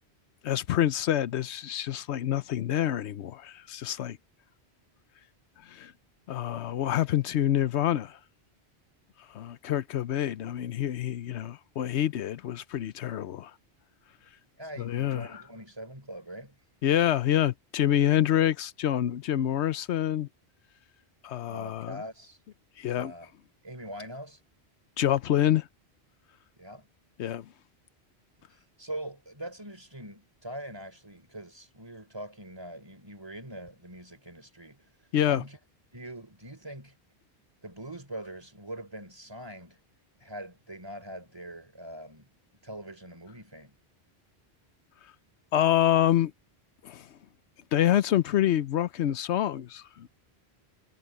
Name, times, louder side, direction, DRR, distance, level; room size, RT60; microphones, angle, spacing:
voice 1, 0.4-4.2 5.6-5.9 6.3-8.2 9.3-13.5 14.8-15.3 16.8-20.3 21.2-22.0 22.8-23.1 25.0-25.7 27.2-27.5 35.1-35.4 45.5-46.3 46.8-47.1 47.7-50.1, left 11 dB, 85° left, 1.0 m, -27 dB
voice 2, 14.6-16.6 21.5-22.4 22.9-23.3 23.6-24.4 26.6-26.9 28.5-34.8 35.3-35.6 35.9-37.0 37.6-39.8 40.2-42.3 42.6-43.8, right 1 dB, 25° right, 3.5 m, -42 dB
omnidirectional pair, 1.1 m